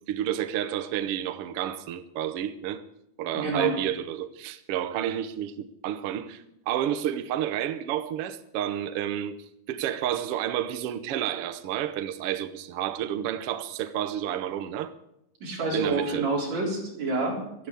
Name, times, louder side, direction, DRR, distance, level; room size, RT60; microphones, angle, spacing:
voice 1, 0.1-2.8 3.2-9.4 9.7-14.9 15.7-16.3, right 11 dB, 85° right, 1.2 m, -30 dB
voice 2, 3.3-3.7 15.4-17.7, right 2 dB, 50° right, 5.4 m, -28 dB
13.0 x 12.0 x 8.4 m
omnidirectional pair, 4.0 m